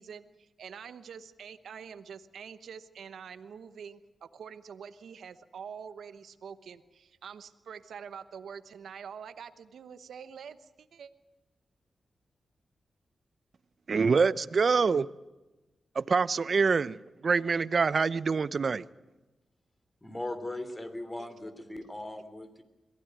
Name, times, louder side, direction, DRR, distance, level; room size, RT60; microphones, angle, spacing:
voice 1, 0.0-11.1 21.2-21.3, right 7 dB, 85° right, 12 dB, 1.0 m, -46 dB
voice 2, 13.9-15.1 16.0-18.8, right 5 dB, 55° right, 19 dB, 0.6 m, -25 dB
voice 3, 20.0-22.6, left 1 dB, 20° left, 10 dB, 3.2 m, -39 dB
22.5 x 16.0 x 9.4 m, 1.1 s
cardioid pair, 70°, 0 cm